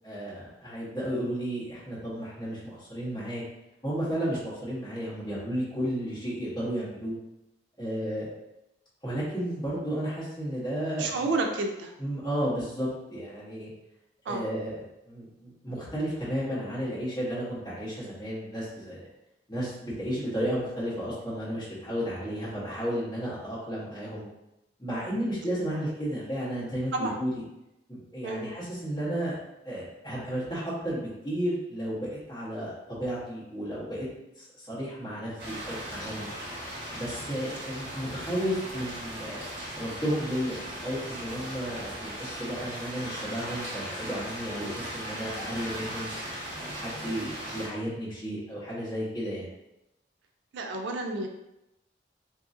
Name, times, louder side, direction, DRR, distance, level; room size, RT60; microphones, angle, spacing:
voice 1, 0.0-3.4 3.8-7.2 7.8-8.3 9.0-11.3 12.0-13.7 14.2-19.1 19.5-24.3 24.8-27.4 27.9-29.4 29.6-34.1 34.4-36.3 36.9-39.4 39.8-46.1 46.6-49.5, equal, 20° left, -10 dB, 1.1 m, -33 dB
voice 2, 11.0-11.9 14.3-14.4 26.9-27.2 28.2-28.5 50.5-51.3, right 3 dB, 80° right, 4 dB, 0.4 m, -30 dB
sound 1, 35.4-47.7, right 1 dB, 65° right, 0.9 m, -38 dB
2.8 x 2.6 x 2.4 m, 0.89 s
head